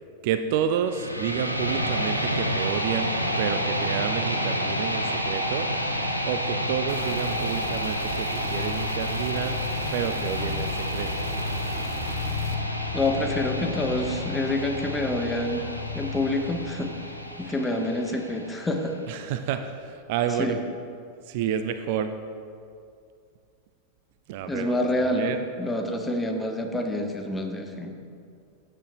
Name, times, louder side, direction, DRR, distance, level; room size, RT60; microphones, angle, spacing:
voice 1, 0.2-5.7 6.3-9.6 9.9-11.3 17.4-17.5 19.1-20.6 21.3-22.1 24.3-25.4, right 8 dB, 50° right, 9 dB, 0.5 m, -30 dB
sound 1, 0.8-18.9, equal, 90° right, 0.9 m, -30 dB
sound 2, 5.5-18.0, left 5 dB, 55° left, 0.9 m, -35 dB
sound 3, 6.9-12.6, right 4 dB, 30° right, 1.1 m, -42 dB
voice 2, 12.9-15.7 15.9-16.9 17.4-19.0 20.3-20.6 24.5-27.9, left 1 dB, 10° left, 3 dB, 1.1 m, -27 dB
15.0 x 8.8 x 3.1 m, 2.4 s
figure-of-eight pair, 90°, 0 cm